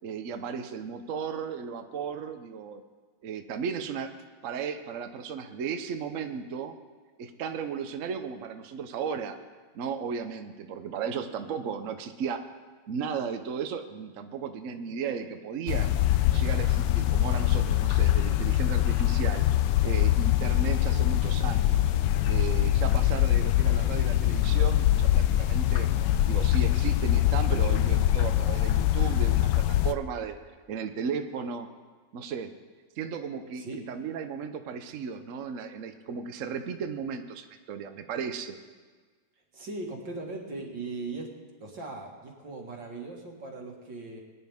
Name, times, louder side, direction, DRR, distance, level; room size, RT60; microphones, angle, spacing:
voice 1, 0.0-2.8 3.2-4.1 4.4-6.8 7.2-9.4 9.7-12.4 12.9-15.9 16.3-19.5 19.8-21.9 22.2-25.9 26.3-30.4 30.7-31.7 32.1-32.5 33.0-38.6, right 6 dB, 55° right, 7 dB, 0.9 m, -35 dB
sound 1, 15.7-29.9, left 13 dB, 75° left, 1.2 m, -23 dB
voice 2, 39.5-41.3 41.6-44.2, right 3 dB, 80° right, 0 dB, 2.6 m, -39 dB
22.0 x 10.0 x 3.6 m, 1.4 s
omnidirectional pair, 2.0 m